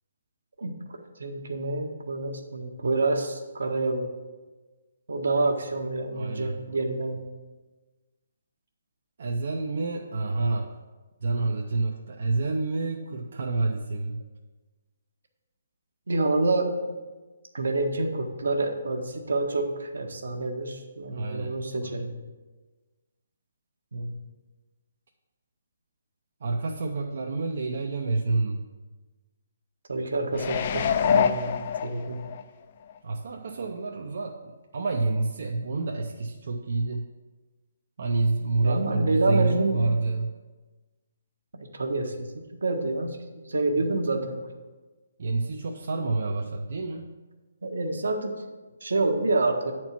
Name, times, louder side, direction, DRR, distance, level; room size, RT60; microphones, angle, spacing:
voice 1, 0.6-4.1 5.1-7.2 16.1-16.8 17.5-22.1 23.9-24.1 29.9-32.2 38.6-39.8 41.7-42.3 42.6-43.2 43.5-44.4 47.6-48.3 48.8-49.7, right 2 dB, 80° right, 3 dB, 1.2 m, -27 dB
voice 2, 6.1-6.7 9.2-10.7 11.2-14.2 21.1-21.9 26.4-28.7 33.0-37.1 38.0-40.3 45.2-47.1, right 3 dB, 60° right, 1 dB, 0.6 m, -28 dB
sound 1, 30.3-32.4 32.9-33.0, left 7 dB, 45° left, 0.4 m, -25 dB
8.7 x 4.4 x 5.9 m, 1.3 s
hypercardioid pair, 150°, 0 cm